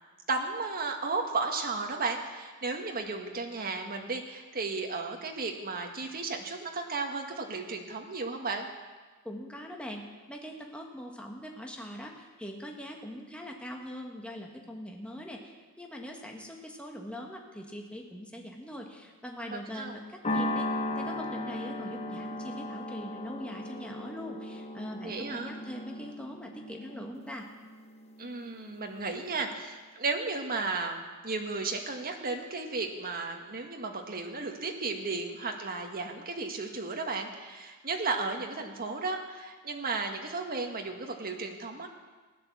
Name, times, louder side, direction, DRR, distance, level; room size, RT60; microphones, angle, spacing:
voice 1, 0.3-8.7 19.5-20.0 25.0-25.5 28.2-41.9, right 3 dB, 40° right, 3 dB, 1.7 m, -34 dB
voice 2, 9.2-20.7 20.9-27.5, equal, 5° left, 1 dB, 1.4 m, -42 dB
sound 1, 20.2-28.8, left 1 dB, 30° left, 1.0 m, -36 dB
15.5 x 11.0 x 7.2 m, 1.4 s
head